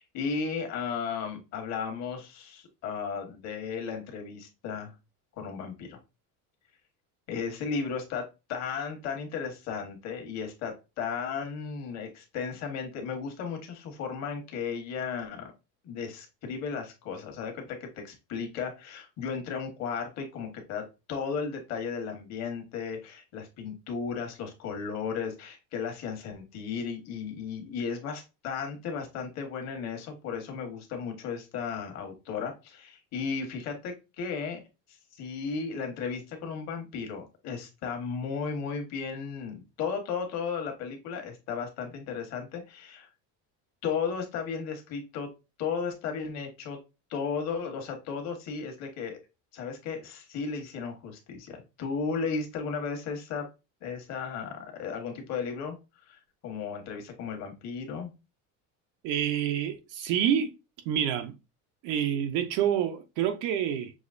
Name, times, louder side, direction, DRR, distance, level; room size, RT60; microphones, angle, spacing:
voice 1, 0.0-4.9 5.4-6.0 7.3-8.2 8.5-15.5 15.8-34.6 34.9-43.1 43.8-45.3 45.6-46.8 47.1-49.2 49.5-53.5 53.8-55.8 56.1-58.1, left 5 dB, 45° left, 1.3 m, -35 dB
voice 2, 59.0-60.5 60.9-61.3 61.8-63.9, right 9 dB, 55° right, 0.6 m, -27 dB
6.2 x 2.9 x 2.4 m
cardioid pair, 175°, 37 cm